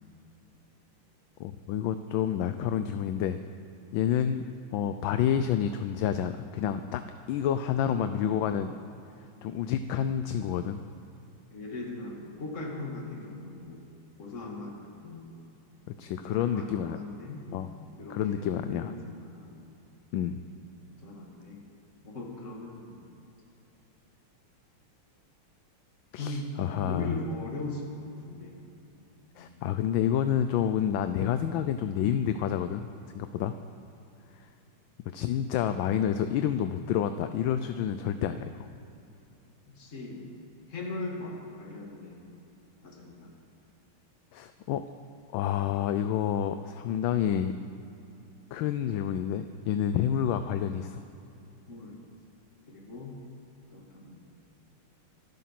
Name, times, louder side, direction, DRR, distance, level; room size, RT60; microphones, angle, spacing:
voice 1, 1.4-3.4 3.9-4.4 4.7-7.0 7.3-8.7 9.4-10.8 15.9-17.0 17.5-17.7 18.1-18.9 20.1-20.4 26.1-27.1 29.4-32.9 33.1-33.5 34.4-34.5 35.1-38.7 44.3-44.8 45.3-47.5 48.5-51.0, left 9 dB, 75° left, 10 dB, 1.3 m, -29 dB
voice 2, 7.8-8.1 11.5-13.8 14.2-15.3 16.2-17.4 18.0-19.5 21.0-21.6 22.0-23.0 26.2-28.7 29.4-29.7 39.8-40.3 40.7-42.3 42.8-43.3 51.7-52.0 52.7-53.2 53.7-54.3, left 2 dB, 35° left, -1 dB, 2.6 m, -39 dB
25.0 x 9.4 x 5.9 m, 2.7 s
omnidirectional pair, 2.3 m